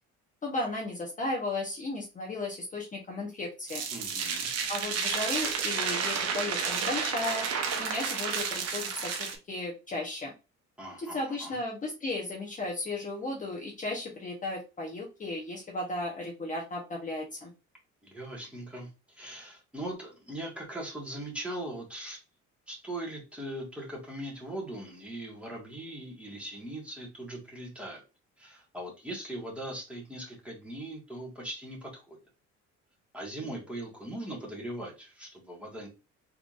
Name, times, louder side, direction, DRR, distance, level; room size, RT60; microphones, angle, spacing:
voice 1, 0.4-3.8 4.7-7.5 7.8-10.3 11.0-17.5, left 2 dB, 25° left, -2 dB, 1.0 m, -35 dB
sound 1, 3.7-9.3, right 6 dB, 60° right, 0.9 m, -31 dB
voice 2, 3.9-4.5 10.8-11.6 18.0-22.2 22.7-28.0 28.4-32.2 33.1-35.9, right 1 dB, 5° right, -2 dB, 1.6 m, -40 dB
3.8 x 3.3 x 2.5 m, 0.28 s
cardioid pair, 135°, 29 cm